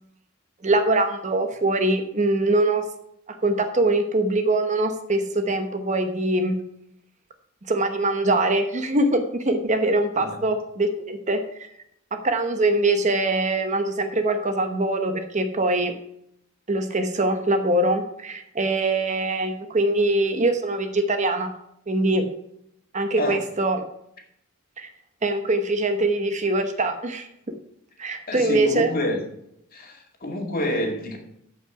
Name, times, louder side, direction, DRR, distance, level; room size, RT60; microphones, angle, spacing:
voice 1, 0.6-2.9 3.4-6.5 7.7-11.4 12.1-16.0 16.7-21.5 21.9-22.3 22.9-23.8 24.8-24.9 25.2-27.3 28.0-28.9, right 2 dB, 35° right, 1.0 m, -23 dB
voice 2, 28.3-29.2 29.7-31.2, left 1 dB, 45° left, 2.2 m, -27 dB
13.5 x 5.6 x 4.9 m
head